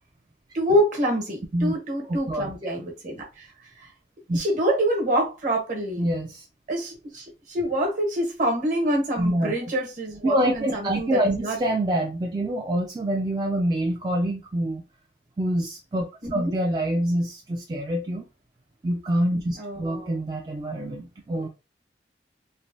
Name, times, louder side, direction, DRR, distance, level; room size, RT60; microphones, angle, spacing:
voice 1, 0.5-3.5 4.3-6.1 6.7-11.6 16.2-16.6 19.6-20.1 21.3-21.4, right 1 dB, 45° right, 1.1 m, -26 dB
voice 2, 2.1-2.5 4.3-4.4 6.0-6.5 9.2-9.7 10.2-14.8 15.4-18.3 18.8-21.5, right 1 dB, 25° right, 0.3 m, -26 dB
3.2 x 2.2 x 2.6 m
head